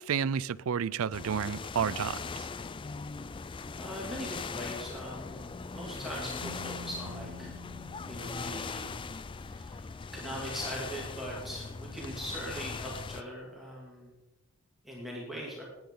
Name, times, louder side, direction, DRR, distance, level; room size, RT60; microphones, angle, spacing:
voice 1, 0.0-2.5, right 7 dB, 75° right, 0.4 m, -31 dB
sound 1, 1.1-13.2, left 4 dB, 25° left, 0.3 m, -40 dB
voice 2, 3.8-7.6 8.1-8.9 9.3-14.1 14.8-15.6, equal, ahead, 2.5 m, -41 dB
Keyboard (musical), 6.4-9.6, left 4 dB, 55° right, 1.1 m, -48 dB
20.5 x 10.5 x 3.8 m
head